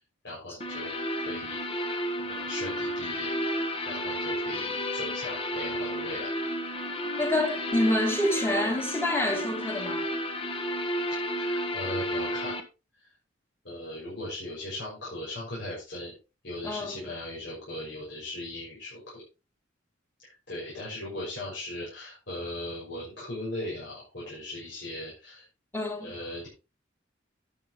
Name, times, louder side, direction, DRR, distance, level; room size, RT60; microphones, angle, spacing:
voice 1, 0.2-1.6 2.2-3.5 3.8-6.3 11.2-12.6 13.0-13.1 13.6-16.1 16.4-19.2 20.2-25.4 26.0-26.5, left 1 dB, 65° left, 6.3 m, -38 dB
sound 1, 0.6-12.6, equal, 30° left, 1.4 m, -32 dB
voice 2, 7.2-10.1 16.6-16.9 25.7-26.1, left 1 dB, 10° left, 2.8 m, -27 dB
12.0 x 9.3 x 3.1 m
head